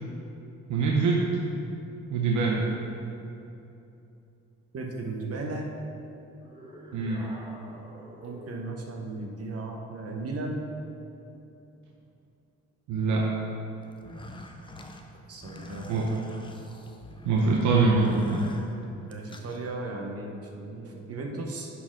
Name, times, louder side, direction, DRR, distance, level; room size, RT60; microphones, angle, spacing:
voice 1, 0.7-1.3 2.1-2.7 6.9-7.2 12.9-13.3 15.9-16.1 17.2-18.5, right 3 dB, 75° right, -2 dB, 0.8 m, -24 dB
voice 2, 4.7-5.7 8.2-10.7 15.3-16.2 19.1-21.7, right 2 dB, 50° right, 1 dB, 1.0 m, -36 dB
sound 1, 6.4-8.7, right 1 dB, 15° right, 1.3 m, -47 dB
sound 2, 13.9-19.6, left 1 dB, 15° left, 0.6 m, -43 dB
11.0 x 4.3 x 3.8 m, 2.8 s
cardioid pair, 90°, 30 cm